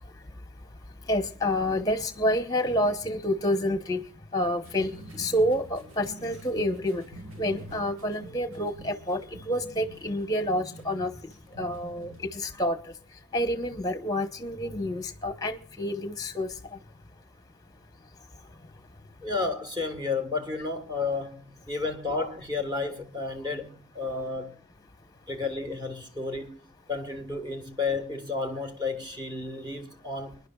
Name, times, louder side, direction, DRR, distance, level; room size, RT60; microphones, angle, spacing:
voice 1, 1.1-4.0 4.3-7.0 7.4-11.1 11.6-12.8 13.3-16.5, left 1 dB, 15° left, 0.9 m, -28 dB
sound 1, 4.6-12.4, right 1 dB, 60° right, 1.6 m, -47 dB
voice 2, 19.2-24.6 25.3-26.6 26.9-30.4, left 3 dB, 20° right, 1.3 m, -32 dB
30.0 x 10.5 x 2.3 m
head